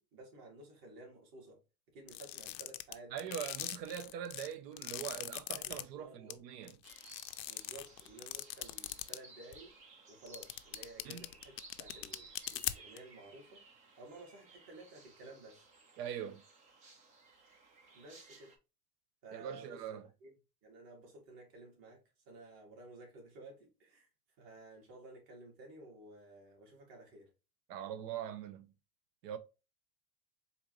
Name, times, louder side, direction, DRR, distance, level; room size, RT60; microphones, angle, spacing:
voice 1, 0.0-1.6 1.9-3.4 5.7-6.4 7.4-9.7 10.1-13.6 14.0-15.7 17.9-18.5 19.2-20.3 20.6-24.1 24.4-27.3, right 2 dB, 45° right, 2.2 m, -54 dB
sound 1, 2.1-5.8 6.3-6.4 6.7-9.2 9.5-9.6 10.3-13.0, left 16 dB, 80° left, 0.6 m, -40 dB
voice 2, 3.1-6.8 11.0-11.3 16.0-16.4 19.3-20.1 27.7-28.7 29.2-29.4, right 9 dB, 75° right, 0.7 m, -42 dB
sound 2, 6.8-18.6, right 3 dB, 20° right, 0.3 m, -58 dB
4.2 x 2.7 x 2.9 m
hypercardioid pair, 110°, 49 cm